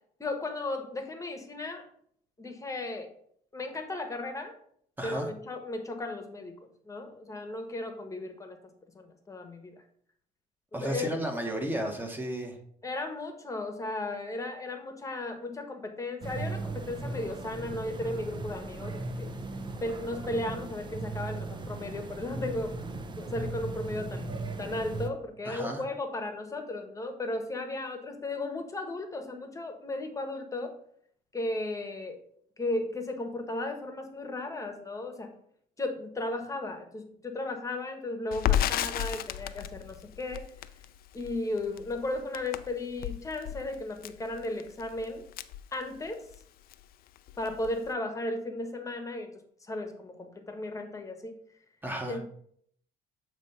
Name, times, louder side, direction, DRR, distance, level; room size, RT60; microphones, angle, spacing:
voice 1, 0.2-1.9 2.4-3.1 3.5-4.5 5.0-6.6 6.8-8.6 8.9-9.8 10.7-11.1 12.8-19.3 19.8-22.7 23.2-30.8 31.3-32.2 32.6-35.3 35.8-40.5 41.1-45.2 45.7-46.2 47.4-49.3 49.6-51.3 52.0-52.2, left 2 dB, 20° left, 5 dB, 1.2 m, -35 dB
voice 2, 5.0-5.3 10.7-12.6 25.4-25.8 51.8-52.2, right 1 dB, 10° right, 3 dB, 1.3 m, -33 dB
sound 1, 16.2-25.1, right 3 dB, 25° right, 0.7 m, -37 dB
Crackle, 38.3-46.4 46.7-46.8 47.2-47.9, left 11 dB, 60° left, 0.4 m, -33 dB
7.4 x 3.0 x 5.4 m, 0.64 s
cardioid pair, 110°, 17 cm